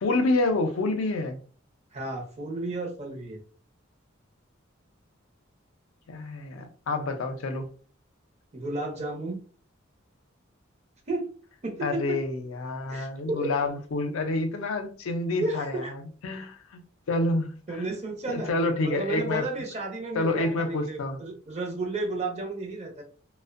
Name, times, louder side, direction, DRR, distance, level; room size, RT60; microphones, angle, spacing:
voice 1, 0.0-1.4 6.1-7.7 11.8-16.8 17.1-17.9 18.3-19.5 20.1-21.2, left 2 dB, 80° left, 0.5 m, -28 dB
voice 2, 1.9-3.4 8.5-9.4 11.1-11.3 11.6-12.2 12.9-13.5 15.4-15.9 17.7-18.5 18.8-23.0, right 2 dB, 35° right, 0.6 m, -32 dB
2.5 x 2.1 x 2.4 m
head